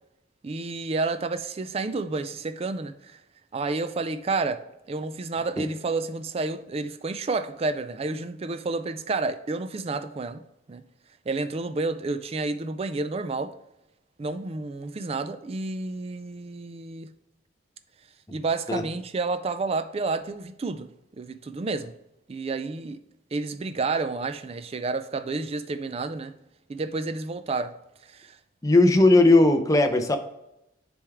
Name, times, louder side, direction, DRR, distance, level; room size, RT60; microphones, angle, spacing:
voice 1, 0.4-3.2 3.5-10.4 10.7-10.8 11.3-13.5 14.2-17.1 18.3-20.9 21.2-21.9 22.3-23.0 23.3-26.3 26.7-27.7 28.1-28.4, right 3 dB, 30° right, 0.4 m, -30 dB
voice 2, 28.6-30.2, left 2 dB, 15° left, 0.6 m, -17 dB
10.0 x 3.5 x 3.4 m
head